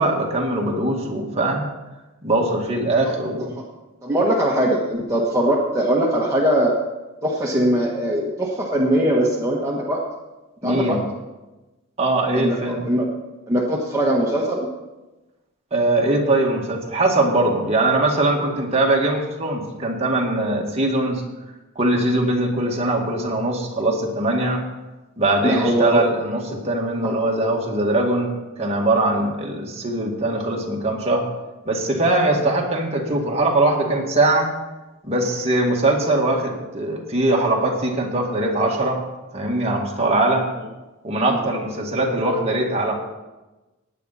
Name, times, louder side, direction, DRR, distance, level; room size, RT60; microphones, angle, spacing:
voice 1, 0.0-1.7 2.2-3.5 10.6-11.0 12.0-12.8 15.7-21.2 21.8-24.6 25.2-28.3 28.6-31.3 31.7-34.5 35.0-39.0 39.3-40.5 41.0-42.9, right 2 dB, 30° right, -1 dB, 2.0 m, -21 dB
voice 2, 4.0-6.8 7.2-10.0 10.6-11.0 12.3-13.1 13.5-14.7 25.4-26.1 27.0-27.1 41.3-41.4, right 1 dB, 15° right, -4 dB, 1.4 m, -21 dB
17.0 x 9.5 x 4.2 m, 1.1 s
head